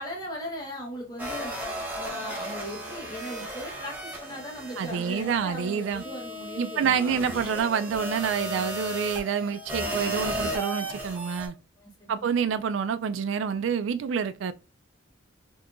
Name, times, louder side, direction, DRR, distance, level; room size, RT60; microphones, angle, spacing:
voice 1, 0.0-1.6 2.0-7.5 11.8-12.3, equal, 20° left, 1.0 m, -38 dB
sound 1, 1.2-11.5, equal, 10° right, 0.9 m, -35 dB
voice 2, 4.8-6.0 6.6-11.6 12.1-14.5, right 7 dB, 70° right, 0.3 m, -27 dB
3.7 x 2.7 x 2.5 m
head